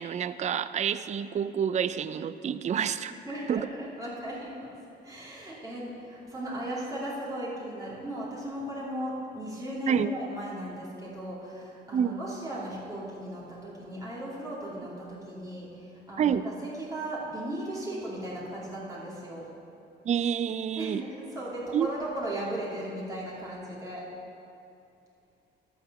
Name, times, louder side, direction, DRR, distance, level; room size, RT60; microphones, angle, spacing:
voice 1, 0.0-3.1 3.5-3.7 9.9-10.1 11.9-12.2 16.2-16.5 20.0-21.0 21.7-21.9, right 8 dB, 35° right, 13 dB, 0.4 m, -28 dB
voice 2, 3.1-4.7 5.0-19.5 20.8-24.0, right 1 dB, 15° right, -7 dB, 2.8 m, -37 dB
11.5 x 4.7 x 7.4 m, 2.6 s
cardioid pair, 90°, 20 cm